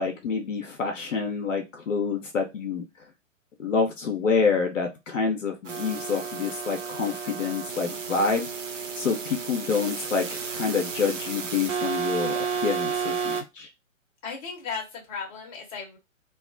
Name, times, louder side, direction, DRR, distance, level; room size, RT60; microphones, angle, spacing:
voice 1, 0.0-2.8 3.6-8.5 9.0-13.7, left 5 dB, 70° left, 3 dB, 0.7 m, -27 dB
sound 1, 5.6-13.4, right 6 dB, 70° right, 0.7 m, -32 dB
voice 2, 14.2-16.0, left 5 dB, 25° left, -1 dB, 0.9 m, -35 dB
2.3 x 2.1 x 2.5 m, 0.22 s
figure-of-eight pair, 125°, 40 cm